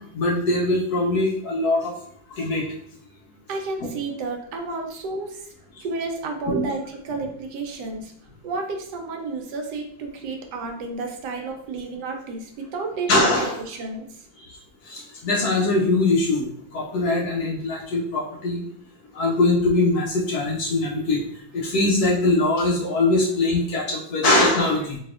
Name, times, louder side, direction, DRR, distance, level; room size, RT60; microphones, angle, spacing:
voice 1, 0.1-1.9 2.3-2.7 6.5-6.6 13.1-13.6 14.9-16.5 16.7-18.6 19.1-21.2 21.5-25.0, left 2 dB, 70° left, -2 dB, 1.0 m, -22 dB
voice 2, 3.5-5.4 5.8-8.1 8.4-13.1 13.4-14.1, right 3 dB, 70° right, 3 dB, 1.1 m, -31 dB
4.1 x 2.7 x 2.4 m, 0.65 s
omnidirectional pair, 2.1 m